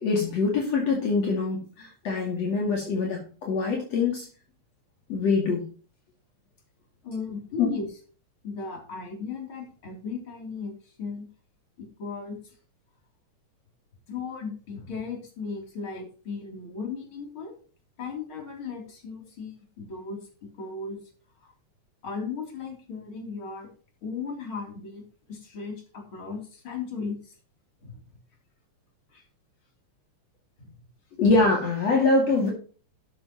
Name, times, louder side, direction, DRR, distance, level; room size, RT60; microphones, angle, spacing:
voice 1, 0.0-4.3 5.1-5.6 7.6-7.7 31.2-32.5, left 3 dB, 60° left, -1 dB, 3.6 m, -24 dB
voice 2, 7.0-7.9 8.4-11.3 11.8-12.5 14.1-17.6 18.0-21.0 21.4-21.5 22.0-23.7 24.0-27.3 27.8-28.0 29.1-29.2 30.6-30.8, left 5 dB, 45° left, 0 dB, 4.2 m, -36 dB
12.5 x 9.8 x 3.1 m, 0.39 s
omnidirectional pair, 3.3 m